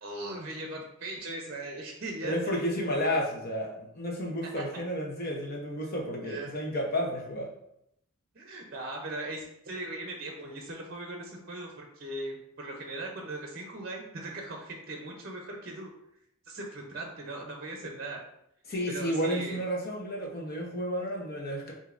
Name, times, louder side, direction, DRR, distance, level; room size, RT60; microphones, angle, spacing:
voice 1, 0.0-2.7 4.4-4.6 5.8-5.9 6.2-6.5 8.3-15.9 16.4-18.2 18.9-19.6, right 2 dB, 45° right, 1 dB, 0.6 m, -39 dB
voice 2, 2.2-7.5 18.7-21.7, equal, 45° left, 0 dB, 0.9 m, -31 dB
6.3 x 2.7 x 2.5 m, 0.78 s
head